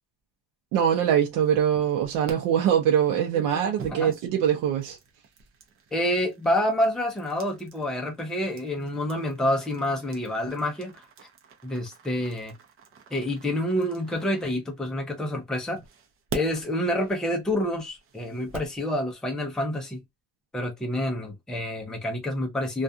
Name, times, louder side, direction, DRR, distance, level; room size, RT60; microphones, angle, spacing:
voice 1, 0.7-5.0, right 9 dB, 85° right, 0.6 m, -23 dB
sound 1, 1.4-2.3 3.1-15.1 15.7-18.8, right 4 dB, 40° right, 0.7 m, -44 dB
voice 2, 5.9-10.9 11.6-12.5 13.1-15.8 16.3-20.0 20.5-22.8, left 1 dB, ahead, 0.5 m, -28 dB
2.3 x 2.3 x 2.6 m
cardioid pair, 170°, 31 cm